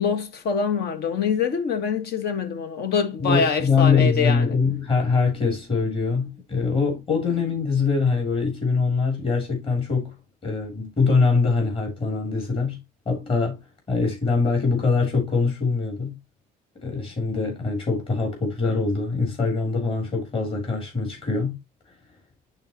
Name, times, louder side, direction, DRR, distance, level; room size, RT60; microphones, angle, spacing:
voice 1, 0.0-4.6, left 6 dB, 70° left, 1.6 m, -25 dB
voice 2, 3.2-10.1 10.4-12.8 13.1-13.6 13.9-16.2 16.8-21.6, left 4 dB, 35° left, 3.4 m, -23 dB
11.0 x 4.1 x 3.0 m
cardioid pair, 110°, 17 cm